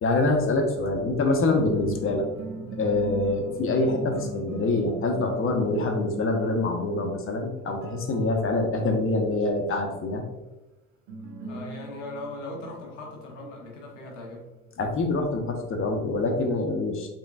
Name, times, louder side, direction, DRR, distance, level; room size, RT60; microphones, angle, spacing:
voice 1, 0.0-2.3 2.7-10.2 14.8-17.1, left 2 dB, 35° left, 4 dB, 0.8 m, -25 dB
sound 1, 1.5-8.8 11.1-15.1, right 3 dB, 60° right, 0.8 m, -42 dB
voice 2, 11.5-14.5, left 1 dB, 80° left, -1 dB, 0.9 m, -39 dB
4.0 x 3.6 x 2.3 m, 1.1 s
figure-of-eight pair, 50°, 37 cm